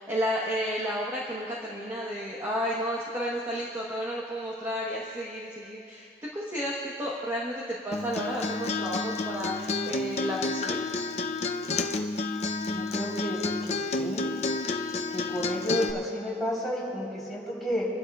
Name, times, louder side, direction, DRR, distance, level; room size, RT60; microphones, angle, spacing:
voice 1, 0.0-10.8, equal, 15° right, -5 dB, 1.1 m, -32 dB
Acoustic guitar, 7.9-15.9, left 3 dB, 35° left, 0.5 m, -30 dB
voice 2, 12.7-14.3 15.1-17.9, equal, ahead, -8 dB, 3.6 m, -32 dB
29.5 x 11.5 x 2.4 m, 2.6 s
head